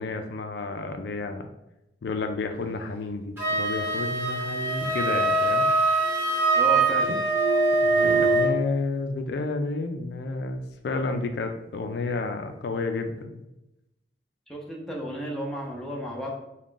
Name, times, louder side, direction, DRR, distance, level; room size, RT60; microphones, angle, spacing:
voice 1, 0.0-1.5 2.0-5.7 7.8-13.5, left 3 dB, 65° left, 6 dB, 0.3 m, -31 dB
Wind instrument woodwind instrument, 3.4-8.6, right 2 dB, 15° right, 0.9 m, -23 dB
sound 1, 4.6-5.5 5.8-6.8 7.0-8.6, right 8 dB, 55° right, 0.3 m, -32 dB
voice 2, 6.6-7.1 14.5-16.3, equal, 5° left, -3 dB, 0.6 m, -32 dB
3.6 x 2.2 x 3.8 m, 0.90 s
head